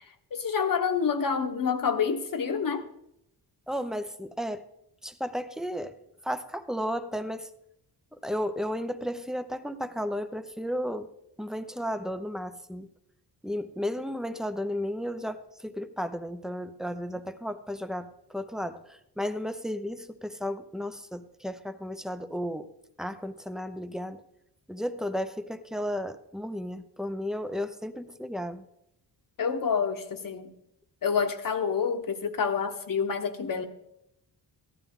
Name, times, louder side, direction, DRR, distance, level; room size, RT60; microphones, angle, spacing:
voice 1, 0.3-2.9 29.4-30.5 31.0-33.6, left 6 dB, 50° left, 7 dB, 1.1 m, -28 dB
voice 2, 3.7-4.6 5.0-5.9 6.2-7.5 8.2-11.1 11.4-12.9 13.4-22.7 23.0-24.2 24.7-28.6, equal, ahead, 10 dB, 0.6 m, -33 dB
14.5 x 12.0 x 3.6 m, 0.79 s
wide cardioid pair, 125°, 42 cm